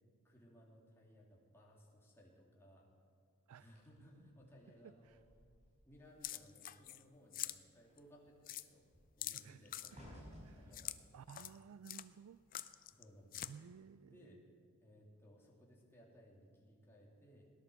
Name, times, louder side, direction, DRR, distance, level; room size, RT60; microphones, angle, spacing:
voice 1, 0.2-2.9 3.5-5.2 5.9-8.8 9.1-10.2 10.5-11.6 12.9-13.5 14.0-14.4 14.8-17.5, equal, 10° left, -3 dB, 2.8 m, -62 dB
sound 1, 3.7-6.4 6.7-7.1 7.4-12.7 13.5-13.7, equal, 30° right, 4.9 m, -60 dB
voice 2, 4.8-5.2 9.3-9.8 10.1-10.7 11.1-12.4 13.5-14.4, right 7 dB, 75° right, 15 dB, 0.3 m, -56 dB
sound 2, 6.2-7.0 7.3-7.6 8.0-8.1 8.5-8.7 9.2-9.9 10.7-11.0 11.3-11.6 11.8-12.0 12.5-13.0 13.3-13.5, left 13 dB, 40° left, 0.5 m, -45 dB
18.0 x 11.0 x 6.7 m, 2.2 s
head